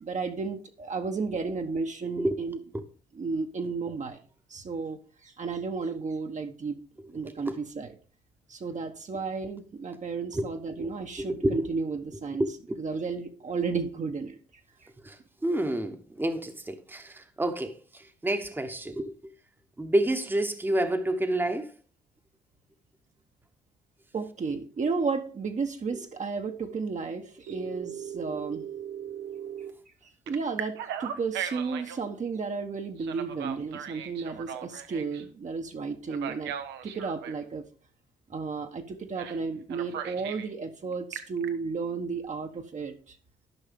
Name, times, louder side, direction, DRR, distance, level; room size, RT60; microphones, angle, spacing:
voice 1, 0.0-2.6 3.1-4.2 4.5-8.0 8.5-12.5 12.8-14.4 24.1-28.7 30.3-36.5 36.8-37.7 38.3-43.1, right 4 dB, 40° right, 1.1 m, -33 dB
voice 2, 7.2-7.6 10.3-10.5 10.8-10.9 11.2-11.7 12.4-12.8 15.0-15.2 15.4-17.8 18.2-19.1 19.8-21.7, right 1 dB, 10° right, 1.1 m, -29 dB
Telephone, 27.5-29.7 30.3-32.0 33.0-35.2 36.1-37.4 39.2-39.4 39.7-40.5 40.9-41.5, right 9 dB, 75° right, 0.8 m, -38 dB
12.0 x 5.5 x 3.6 m
supercardioid pair, 55°, 18 cm